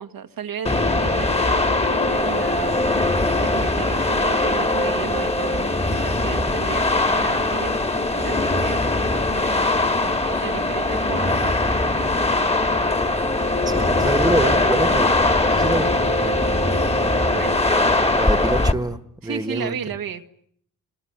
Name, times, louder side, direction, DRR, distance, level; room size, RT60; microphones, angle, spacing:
voice 1, 0.0-3.1 3.4-13.1 17.3-17.6 19.2-20.3, right 8 dB, 70° right, 1.8 m, -34 dB
sound 1, 0.6-18.7, left 2 dB, 15° left, 2.6 m, -21 dB
voice 2, 13.7-16.4 18.1-19.8, right 1 dB, 10° right, 1.9 m, -26 dB
26.0 x 25.5 x 8.0 m
cardioid pair, 70°, 36 cm